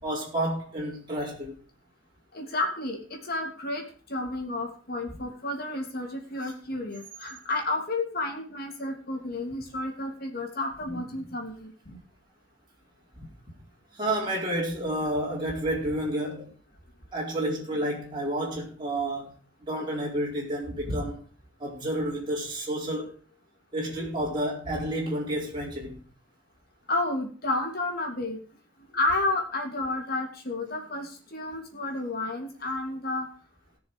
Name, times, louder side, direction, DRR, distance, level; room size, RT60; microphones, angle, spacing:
voice 1, 0.0-1.5 13.9-16.5 17.1-19.3 19.7-21.2 21.6-23.1 23.7-26.0, right 1 dB, 25° right, 4.5 m, -30 dB
voice 2, 2.3-12.0 26.9-28.4 28.9-33.3, left 2 dB, 50° left, 3.2 m, -31 dB
19.0 x 6.6 x 4.9 m
head